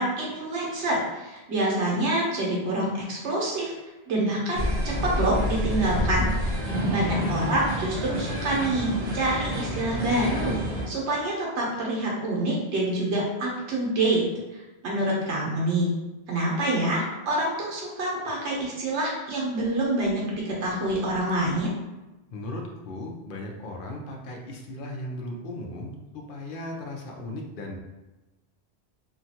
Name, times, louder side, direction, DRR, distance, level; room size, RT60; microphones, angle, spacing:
voice 1, 0.0-3.7 4.1-6.3 6.9-10.6 10.9-14.2 14.5-15.9 16.3-21.7, right 1 dB, 90° right, -3 dB, 1.2 m, -26 dB
sound 1, 4.5-10.9, equal, 45° right, 0.8 m, -28 dB
voice 2, 7.0-7.4 22.3-27.8, left 1 dB, 60° left, 1 dB, 0.7 m, -37 dB
2.8 x 2.3 x 2.7 m, 1.1 s
omnidirectional pair, 1.1 m